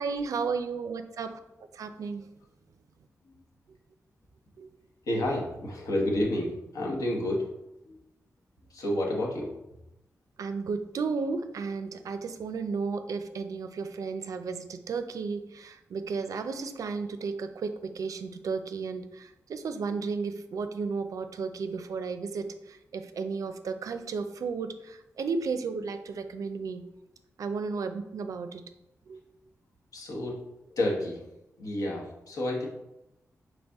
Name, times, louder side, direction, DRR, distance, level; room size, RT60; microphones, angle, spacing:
voice 1, 0.0-1.4 1.7-2.3 4.6-4.7 10.4-26.8 27.4-28.6 29.1-29.2, right 4 dB, 75° right, 9 dB, 0.4 m, -33 dB
voice 2, 5.1-7.5 7.9-8.0 8.7-9.5 29.9-30.4 30.7-31.2 31.6-32.7, left 1 dB, 85° left, -2 dB, 1.0 m, -30 dB
4.1 x 3.2 x 3.5 m, 0.89 s
wide cardioid pair, 90°, 6 cm